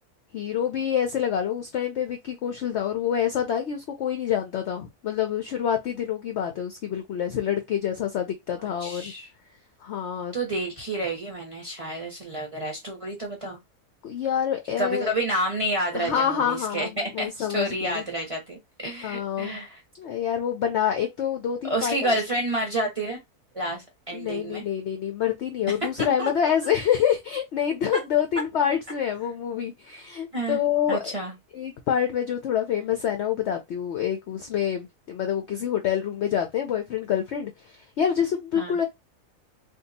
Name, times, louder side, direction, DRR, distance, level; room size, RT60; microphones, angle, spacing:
voice 1, 0.3-9.1 9.8-10.4 14.0-15.1 15.9-18.0 19.0-19.6 20.0-22.1 24.1-31.2 31.5-38.8, left 9 dB, 70° left, 0.6 m, -27 dB
voice 2, 8.8-9.3 10.3-13.6 14.8-19.8 21.6-23.2 23.5-24.6 26.0-26.3 30.3-30.6 30.9-31.3 38.5-38.8, right 1 dB, 30° right, 0.8 m, -29 dB
2.7 x 2.3 x 4.0 m
omnidirectional pair, 1.6 m